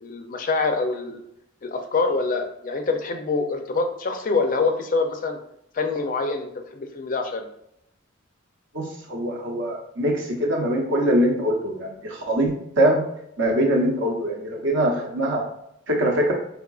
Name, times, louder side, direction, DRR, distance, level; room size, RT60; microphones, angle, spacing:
voice 1, 0.0-1.2 1.6-5.4 5.7-7.4, left 3 dB, 40° left, 6 dB, 0.4 m, -25 dB
voice 2, 8.7-13.0 13.4-15.4 15.9-16.3, right 1 dB, 60° right, 1 dB, 0.8 m, -23 dB
3.6 x 3.5 x 2.3 m, 0.77 s
head